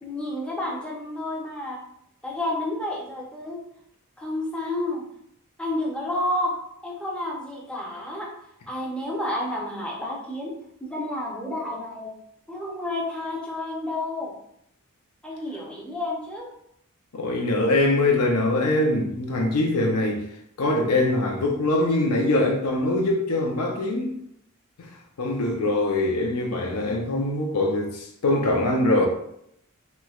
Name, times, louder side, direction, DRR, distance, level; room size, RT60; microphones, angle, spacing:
voice 1, 0.0-1.8 2.2-3.6 4.2-5.0 5.6-6.5 6.8-8.3 8.7-10.5 10.8-12.1 12.5-14.3 15.2-16.5, left 1 dB, 5° left, 0.6 m, -30 dB
voice 2, 17.1-20.2 20.6-24.1 24.8-24.9 25.2-29.1, left 2 dB, 75° left, 0.6 m, -23 dB
3.2 x 3.0 x 2.3 m
head